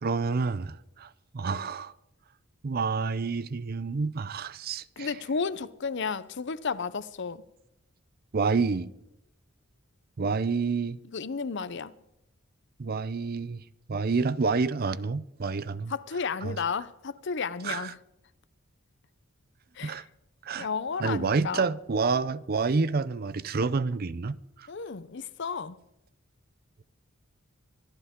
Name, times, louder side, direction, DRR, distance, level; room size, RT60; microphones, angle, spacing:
voice 1, 0.0-1.9 2.6-5.1 8.3-8.9 10.2-11.0 12.8-13.6 13.9-15.9 16.4-16.6 17.6-17.9 19.8-20.1 20.4-20.7 21.0-24.7, right 4 dB, 45° right, 0.5 m, -28 dB
voice 2, 5.0-7.4 11.1-11.9 15.9-18.0 19.8-20.0 20.6-21.7 24.7-25.8, left 5 dB, 55° left, 0.6 m, -32 dB
25.0 x 12.5 x 3.7 m
head